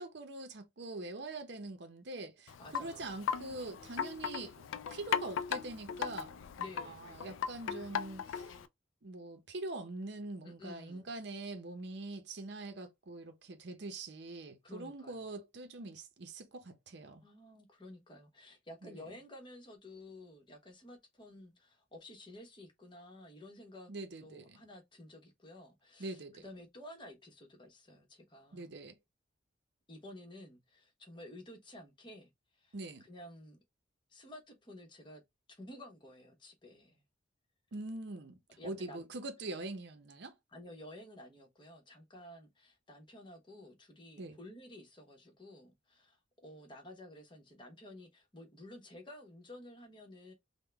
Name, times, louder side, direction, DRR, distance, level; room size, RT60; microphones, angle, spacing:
voice 1, 0.0-4.5 4.9-6.3 6.8-8.5 9.0-17.2 18.8-19.0 23.9-24.6 26.0-26.5 28.5-29.0 32.7-33.0 37.7-40.4 44.2-44.4, right 2 dB, 60° right, 0.7 m, -44 dB
Wind chime, 2.5-8.7, left 7 dB, 90° left, 0.4 m, -38 dB
voice 2, 2.6-3.1 6.6-7.1 10.4-11.1 14.6-15.3 17.2-23.9 24.2-28.7 29.9-32.7 33.0-33.6 34.1-35.2 35.5-37.0 38.6-39.1 40.5-50.3, left 1 dB, 25° left, 1.1 m, -52 dB
3.6 x 2.2 x 3.3 m
head